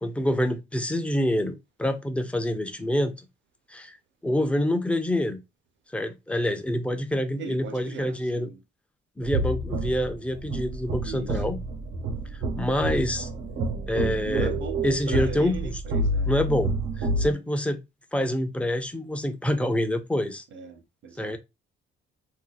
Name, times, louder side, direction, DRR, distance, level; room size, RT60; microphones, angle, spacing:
voice 1, 0.0-3.1 3.7-4.0 4.2-5.4 5.9-8.5 9.2-11.6 12.6-13.3 13.9-14.6 14.8-15.8 16.2-16.7 17.0-17.8 18.1-20.4 21.2-21.4, left 1 dB, 5° left, 0.6 m, -26 dB
voice 2, 7.4-8.6 11.0-11.4 14.3-16.3 17.2-17.4 20.5-21.4, right 5 dB, 70° right, 0.8 m, -39 dB
sound 1, 9.2-17.3, right 2 dB, 85° right, 1.2 m, -29 dB
2.8 x 2.2 x 3.9 m
cardioid pair, 90°, 20 cm